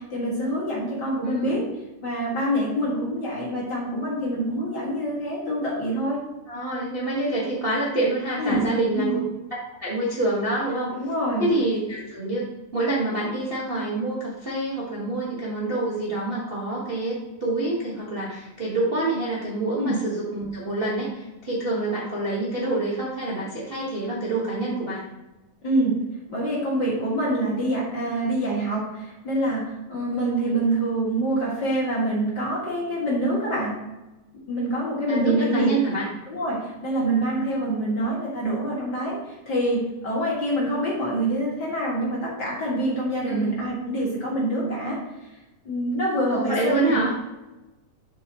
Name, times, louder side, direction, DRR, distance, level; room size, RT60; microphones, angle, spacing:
voice 1, 0.0-1.6 2.0-6.2 8.4-8.7 8.9-9.2 10.9-11.5 19.8-20.0 25.6-26.0 26.3-33.7 34.5-35.7 36.3-45.0 45.6-47.0, right 1 dB, 35° left, -6 dB, 2.4 m, -26 dB
voice 2, 1.2-1.6 6.5-9.2 9.8-10.9 11.4-12.5 12.7-25.0 30.4-30.6 35.1-36.1 43.3-43.5 46.3-47.1, right 2 dB, 55° right, -7 dB, 0.6 m, -26 dB
7.7 x 7.4 x 3.1 m, 1.0 s
omnidirectional pair, 4.1 m